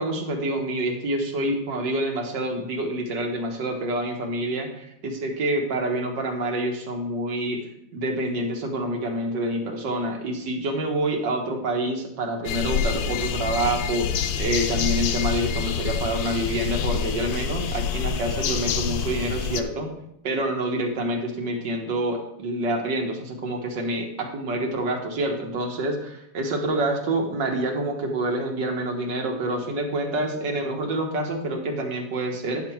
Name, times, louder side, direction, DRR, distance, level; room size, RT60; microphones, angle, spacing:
voice 1, 0.0-14.1 14.4-19.9 20.2-32.7, right 1 dB, 60° right, 2 dB, 1.7 m, -27 dB
sound 1, 12.4-19.6, left 7 dB, 70° left, 1.1 m, -27 dB
9.7 x 5.8 x 4.5 m, 0.77 s
omnidirectional pair, 2.3 m